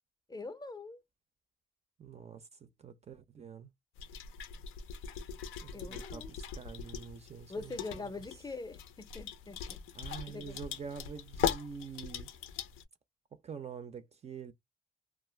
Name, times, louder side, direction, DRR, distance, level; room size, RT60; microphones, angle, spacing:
voice 1, 0.3-1.0 5.7-6.3 7.5-9.6 10.3-10.6, left 3 dB, 20° left, 0.5 m, -43 dB
voice 2, 2.0-3.7 5.6-8.1 9.9-12.3 13.3-14.5, right 6 dB, 35° right, 0.4 m, -46 dB
sound 1, 4.0-12.8, left 8 dB, 90° left, 0.4 m, -40 dB
2.3 x 2.1 x 3.1 m
cardioid pair, 90°, 20 cm